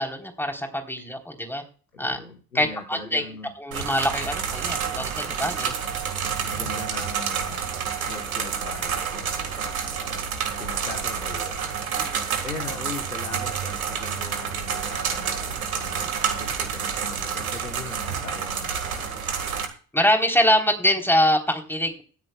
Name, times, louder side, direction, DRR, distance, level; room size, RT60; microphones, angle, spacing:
voice 1, 0.0-1.6 2.0-2.2 2.5-3.2 3.6-5.7 12.0-12.3 19.9-22.0, equal, 5° left, 3 dB, 3.8 m, -24 dB
voice 2, 1.9-3.5 5.7-5.8 6.4-7.7 8.1-10.2 10.6-11.8 12.4-19.0, left 4 dB, 90° left, 4 dB, 1.3 m, -40 dB
sound 1, 3.7-19.6, right 7 dB, 85° right, 1.9 m, -29 dB
18.0 x 13.5 x 2.3 m, 0.39 s
figure-of-eight pair, 50°, 41 cm